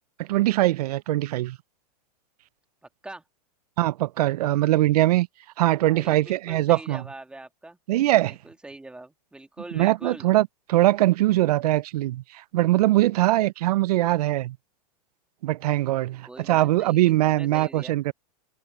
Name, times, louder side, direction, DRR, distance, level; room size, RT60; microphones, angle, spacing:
voice 1, 0.2-1.6 3.8-5.3 5.6-7.0 7.9-8.4 9.7-14.6 15.4-18.1, right 16 dB, 70° right, 0.5 m, -22 dB
voice 2, 5.9-7.8 8.2-10.3 16.3-18.0, right 2 dB, 5° right, 1.8 m, -42 dB
hypercardioid pair, 135°, 21 cm